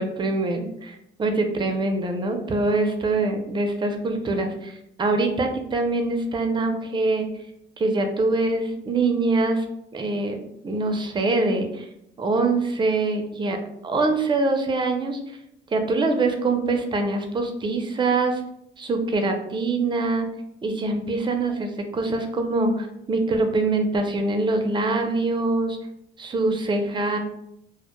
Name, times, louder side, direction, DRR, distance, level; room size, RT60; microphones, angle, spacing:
voice 1, 0.0-7.3 7.8-9.7 9.9-11.9 12.2-13.6 13.8-15.2 15.7-18.4 18.8-20.3 20.6-25.8 26.2-27.2, right 3 dB, 25° right, 5 dB, 0.4 m, -24 dB
2.1 x 2.0 x 2.9 m, 0.79 s
cardioid pair, 90°, 20 cm